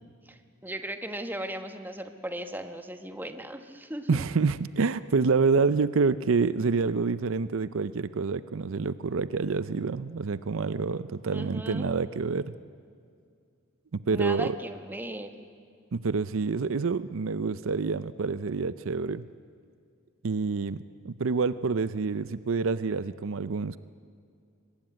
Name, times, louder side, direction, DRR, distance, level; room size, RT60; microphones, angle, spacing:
voice 1, 0.2-4.2 11.3-11.9 14.1-15.5, right 1 dB, 10° right, 7 dB, 1.2 m, -37 dB
voice 2, 4.1-12.5 13.9-14.6 15.9-19.3 20.2-20.8 21.0-23.8, right 4 dB, 65° right, 14 dB, 0.5 m, -27 dB
23.5 x 20.0 x 9.2 m, 2.3 s
head